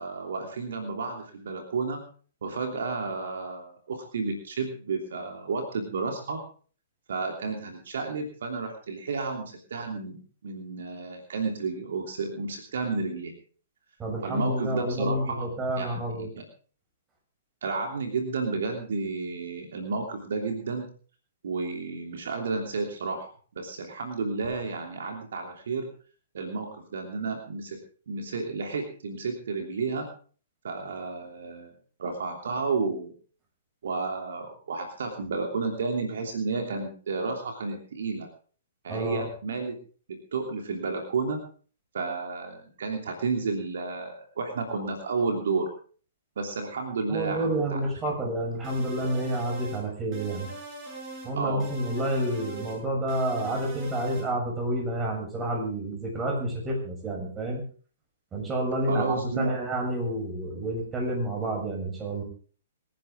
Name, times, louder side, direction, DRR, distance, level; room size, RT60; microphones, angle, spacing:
voice 1, 0.0-2.0 2.4-6.4 7.1-13.3 14.2-15.5 15.8-16.4 17.6-20.9 21.4-25.9 26.3-27.8 28.1-30.1 30.6-31.7 32.0-33.1 33.8-38.3 38.8-39.8 40.1-41.4 41.9-45.7 46.4-48.1 51.4-51.7 58.9-59.6, right 4 dB, 70° right, 3 dB, 3.1 m, -31 dB
voice 2, 14.0-16.3 38.9-39.3 47.1-50.5 51.2-57.6 58.3-62.2, right 1 dB, 20° right, 0 dB, 7.1 m, -29 dB
sound 1, 48.6-49.8 50.1-51.3 51.6-52.8 53.1-54.3, right 3 dB, 35° right, 7.9 m, -41 dB
25.5 x 10.5 x 3.7 m, 0.42 s
hypercardioid pair, 120°, 0 cm